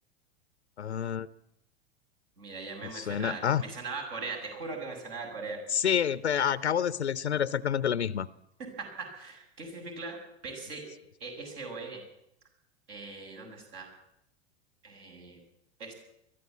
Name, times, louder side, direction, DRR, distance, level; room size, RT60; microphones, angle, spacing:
voice 1, 0.8-1.3 2.8-3.6 5.7-8.3, left 8 dB, 80° left, 17 dB, 0.7 m, -28 dB
voice 2, 2.4-5.6 8.8-10.2 10.4-10.8 11.2-12.0 12.9-13.9 14.8-15.4 15.8-15.9, right 4 dB, 55° right, 3 dB, 7.2 m, -40 dB
22.0 x 14.5 x 8.4 m, 0.80 s
figure-of-eight pair, 90°, 33 cm